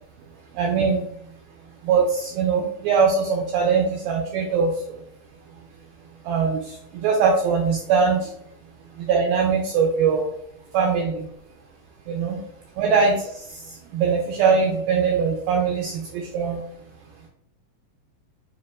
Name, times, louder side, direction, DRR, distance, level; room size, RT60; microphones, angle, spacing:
voice 1, 0.5-1.1 1.8-5.0 6.3-8.3 9.0-10.3 10.7-11.3 12.1-12.4 12.8-16.6, right 5 dB, 85° right, 1 dB, 2.1 m, -22 dB
7.1 x 2.7 x 2.4 m, 0.69 s
omnidirectional pair, 4.9 m